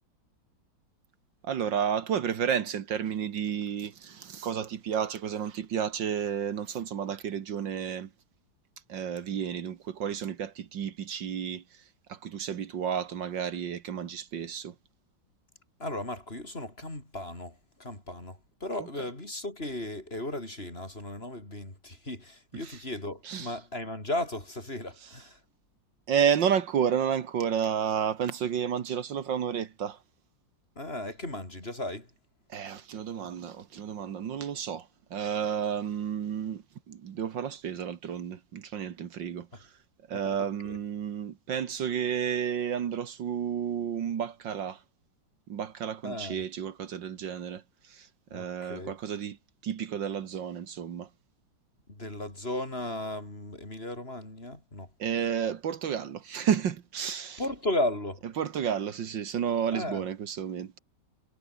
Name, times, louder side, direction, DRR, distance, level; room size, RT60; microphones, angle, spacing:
voice 1, 1.4-8.1 8.9-11.6 12.1-14.7 22.6-22.8 23.2-23.5 26.1-30.0 32.5-39.5 40.1-44.8 45.5-47.6 47.9-49.4 49.6-51.1 55.0-57.4 58.4-60.7, right 8 dB, 70° right, 2.0 m, -31 dB
voice 2, 15.8-25.4 30.8-32.1 39.5-39.6 40.2-40.8 46.0-46.4 48.3-48.9 51.9-54.9 57.4-58.2 59.7-60.0, left 1 dB, 30° left, 5.8 m, -35 dB
omnidirectional pair, 2.1 m